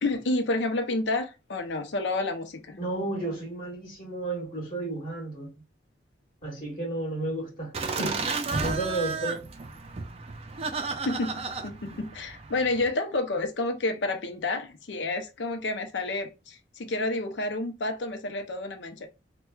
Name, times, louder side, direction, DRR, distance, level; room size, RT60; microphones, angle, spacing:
voice 1, 0.0-2.8 11.1-19.1, left 2 dB, 80° left, 0.6 m, -30 dB
voice 2, 2.8-5.5 6.4-9.4, right 2 dB, 50° left, 1.3 m, -33 dB
Laughter, 7.7-12.9, right 4 dB, 35° right, 0.4 m, -33 dB
4.4 x 2.2 x 2.3 m
head